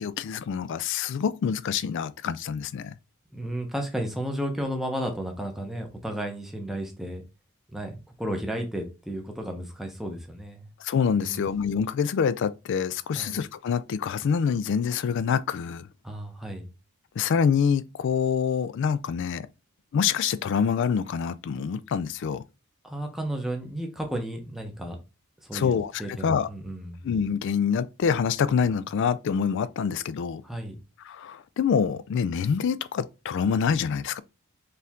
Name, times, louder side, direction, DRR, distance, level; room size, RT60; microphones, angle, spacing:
voice 1, 0.0-3.0 10.8-15.9 17.2-19.5 19.9-22.4 25.5-26.5 27.0-30.4 31.1-34.2, left 7 dB, 55° left, 0.3 m, -26 dB
voice 2, 3.3-7.2 7.7-10.6 11.2-11.5 13.1-13.4 16.0-16.7 22.8-25.0 25.4-25.7 26.0-27.0 30.4-30.8, right 1 dB, ahead, 0.7 m, -33 dB
4.4 x 2.5 x 3.5 m
head